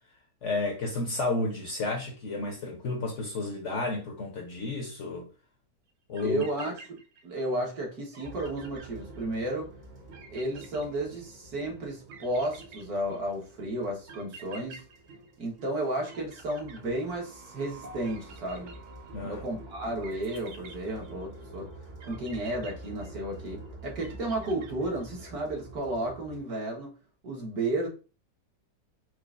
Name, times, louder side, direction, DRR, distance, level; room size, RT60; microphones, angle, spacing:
voice 1, 0.4-5.3 6.1-6.4 19.1-19.4, left 2 dB, 60° left, 0.8 m, -32 dB
sound 1, 5.9-6.0 6.2-7.5 7.8-7.9 8.1-9.6 10.1-11.5 12.1-13.4 14.1-15.8 16.1-17.5 18.0-19.3 20.0-21.4 22.0-23.5 24.0-25.2, right 4 dB, 85° right, 1.4 m, -50 dB
voice 2, 6.2-9.7 10.3-14.8 15.4-18.8 19.2-21.7 22.0-26.9 27.2-27.9, right 1 dB, 65° right, 1.6 m, -33 dB
sound 2, 8.2-26.4, right 2 dB, 40° right, 0.7 m, -47 dB
4.5 x 2.5 x 2.4 m
omnidirectional pair, 1.8 m